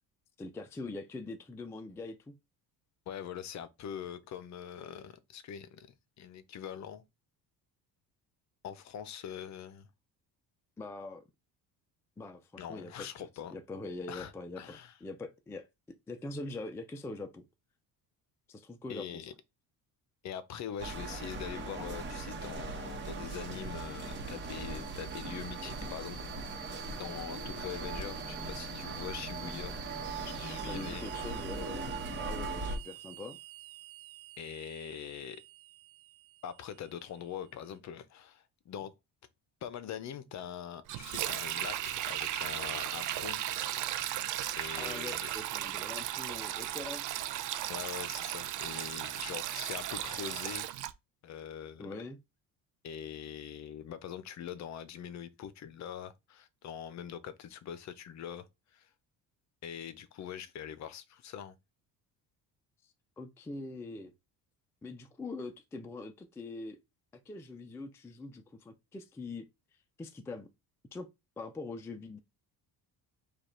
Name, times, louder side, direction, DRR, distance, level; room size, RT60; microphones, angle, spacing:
voice 1, 0.4-2.3 10.8-11.2 12.2-13.3 13.5-15.7 16.1-17.4 18.5-19.3 29.9-30.0 30.7-31.9 32.2-33.4 44.8-47.1 51.8-52.2 62.8-64.1 64.8-66.8 67.3-69.5 70.0-70.5 70.9-71.1 71.4-72.2, left 2 dB, 5° left, 0.3 m, -43 dB
voice 2, 3.1-7.0 8.6-9.9 12.6-13.5 14.1-14.3 14.6-14.9 18.9-19.3 20.2-26.2 26.9-29.8 30.2-31.1 34.4-35.4 36.4-38.9 39.6-43.4 44.6-45.3 47.7-50.7 51.2-52.0 52.8-58.5 58.7-58.9 59.6-61.5, left 9 dB, 45° left, 0.6 m, -43 dB
sound 1, 20.8-32.8, right 3 dB, 30° right, 1.1 m, -40 dB
sound 2, 21.3-37.6, right 10 dB, 80° right, 0.8 m, -49 dB
Sink (filling or washing), 40.9-50.9, right 13 dB, 50° right, 0.5 m, -36 dB
5.0 x 2.4 x 4.3 m
cardioid pair, 160°, 38 cm